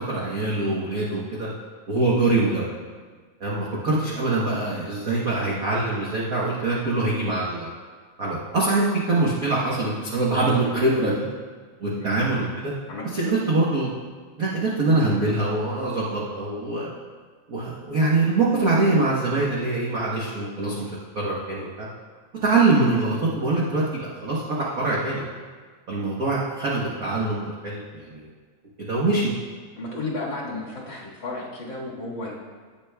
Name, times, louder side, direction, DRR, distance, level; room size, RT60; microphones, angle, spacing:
voice 1, 0.1-1.5 1.9-2.7 3.4-7.7 8.2-11.3 11.8-12.7 13.1-13.9 14.4-16.9 17.5-21.9 22.4-25.2 25.9-28.3 28.8-29.3, right 2 dB, 65° right, -6 dB, 0.8 m, -24 dB
voice 2, 12.9-13.3 29.8-32.3, left 2 dB, 45° left, -5 dB, 2.0 m, -33 dB
17.5 x 6.8 x 2.3 m, 1.5 s
omnidirectional pair, 3.3 m